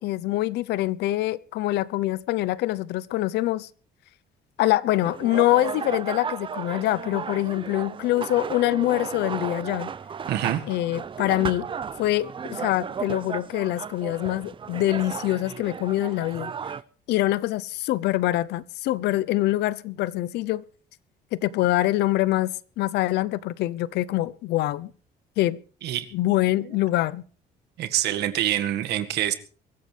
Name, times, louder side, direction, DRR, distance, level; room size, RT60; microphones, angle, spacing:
voice 1, 0.0-3.7 4.6-9.9 10.7-11.7 12.0-16.5 17.1-20.6 21.3-24.9 25.4-25.6 26.1-27.2, left 16 dB, 80° left, 0.8 m, -24 dB
sound 1, 5.0-16.8, right 6 dB, 30° right, 0.6 m, -34 dB
voice 2, 10.3-10.6 25.8-26.1 26.6-26.7 27.8-29.3, right 12 dB, 80° right, 1.9 m, -25 dB
23.5 x 15.0 x 3.4 m
cardioid pair, 110°, 17 cm